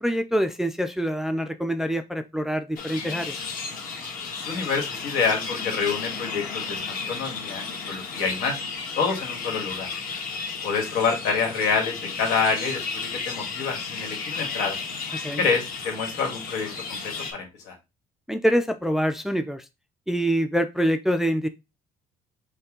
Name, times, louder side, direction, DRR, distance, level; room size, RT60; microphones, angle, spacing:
voice 1, 0.0-3.4 15.2-15.4 18.3-19.6 20.1-21.5, equal, ahead, 8 dB, 0.4 m, -25 dB
sound 1, 2.8-17.3, left 5 dB, 55° left, 1.5 m, -33 dB
voice 2, 4.4-6.8 7.1-8.6 9.0-9.9 10.6-12.9 13.3-14.8 15.4-16.7 17.0-17.7, left 5 dB, 85° left, 3 dB, 1.7 m, -27 dB
5.4 x 2.2 x 3.7 m, 0.24 s
cardioid pair, 110°, 17 cm